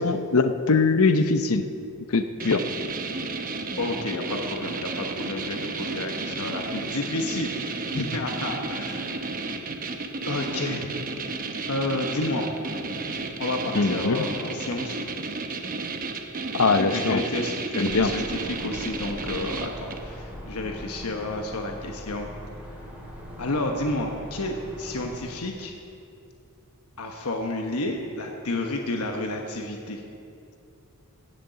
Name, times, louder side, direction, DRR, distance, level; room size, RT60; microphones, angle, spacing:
voice 1, 0.0-1.7 2.1-2.6 13.7-14.2 16.5-17.2 17.8-18.1, left 3 dB, 70° left, 9 dB, 0.8 m, -22 dB
sound 1, 2.4-20.1, right 3 dB, 40° right, 0.9 m, -33 dB
voice 2, 3.8-7.5 7.9-9.3 9.6-9.8 10.3-11.0 11.7-12.6 13.4-15.0 16.7-22.3 23.4-25.7 27.0-30.0, left 2 dB, 85° left, 2 dB, 1.1 m, -30 dB
sound 2, 17.9-25.4, equal, 5° right, 2.8 m, -41 dB
17.0 x 6.7 x 6.9 m, 2.6 s
head